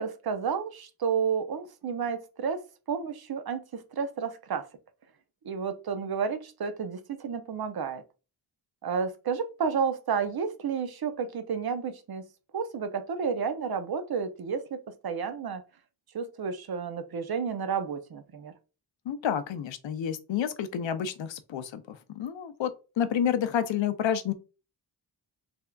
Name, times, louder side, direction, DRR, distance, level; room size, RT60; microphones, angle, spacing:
voice 1, 0.0-2.6 2.9-4.7 5.4-8.0 8.8-12.2 12.5-15.6 16.1-18.5, right 6 dB, 55° right, 0.6 m, -31 dB
voice 2, 19.1-22.7 23.0-24.3, left 9 dB, 80° left, 0.6 m, -29 dB
3.5 x 3.3 x 2.3 m
cardioid pair, 75°, 45 cm